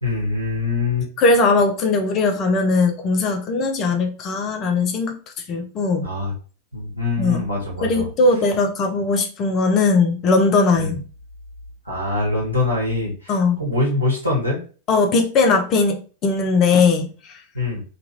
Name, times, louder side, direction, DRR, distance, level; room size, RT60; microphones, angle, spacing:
voice 1, 0.0-1.1 6.0-6.3 6.7-8.1 10.7-10.9 11.8-14.6 17.5-17.8, left 2 dB, 90° right, -3 dB, 1.1 m, -23 dB
voice 2, 1.2-5.1 5.5-6.1 7.2-7.4 7.8-11.0 13.3-13.6 14.9-17.4, left 3 dB, 35° left, 4 dB, 0.6 m, -19 dB
2.8 x 2.4 x 2.9 m, 0.37 s
figure-of-eight pair, 90°, 0 cm